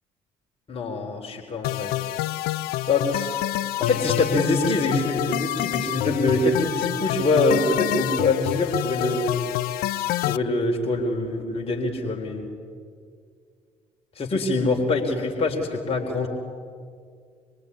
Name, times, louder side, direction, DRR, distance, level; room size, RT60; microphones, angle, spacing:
voice 1, 0.7-2.0 2.9-9.4 10.2-12.5 14.2-16.3, left 2 dB, 35° left, 0 dB, 4.0 m, -24 dB
sound 1, 1.6-10.4, left 14 dB, 70° left, 0.7 m, -27 dB
25.5 x 23.5 x 10.0 m, 2.1 s
hypercardioid pair, 55°, 16 cm